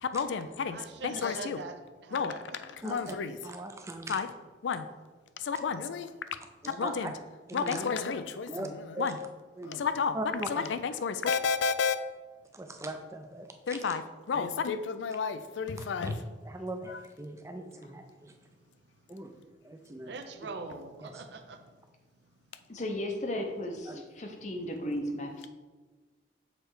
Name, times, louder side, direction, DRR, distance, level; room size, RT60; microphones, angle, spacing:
voice 1, 0.0-1.6 2.1-3.4 4.1-4.3 4.6-4.9 5.4-6.1 6.8-7.1 7.5-9.2 9.6-10.2 10.5-12.0 13.7-16.2 16.9-17.0, left 5 dB, 85° left, 11 dB, 0.4 m, -31 dB
voice 2, 0.7-2.6 2.9-3.1 20.0-21.6, right 3 dB, 70° right, 6 dB, 0.6 m, -43 dB
voice 3, 2.8-3.2 3.4-4.2 6.6-6.9 7.5-7.8 8.5-8.7 8.9-9.1 9.6-9.8 10.1-10.6 12.5-13.8 16.0-16.1 16.4-18.4 19.1-19.3 19.6-20.1 21.0-21.1 23.9-24.0, right 2 dB, 15° right, 5 dB, 0.4 m, -40 dB
voice 4, 22.7-25.5, left 1 dB, 40° left, 3 dB, 0.7 m, -35 dB
6.6 x 3.2 x 4.7 m, 1.3 s
head